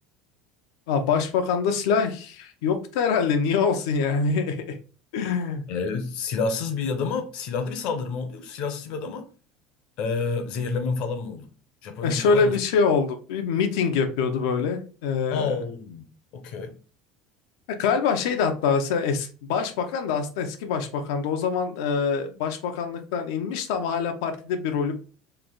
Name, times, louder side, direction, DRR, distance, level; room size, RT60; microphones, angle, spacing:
voice 1, 0.9-4.8 5.1-5.6 12.0-15.5 17.7-24.9, left 5 dB, 85° left, 0.8 m, -25 dB
voice 2, 5.7-9.3 10.0-11.5 11.8-12.6 15.3-16.1 16.3-16.8, left 4 dB, 45° left, 0.7 m, -29 dB
3.3 x 2.5 x 3.8 m
cardioid pair, 170°, 2 cm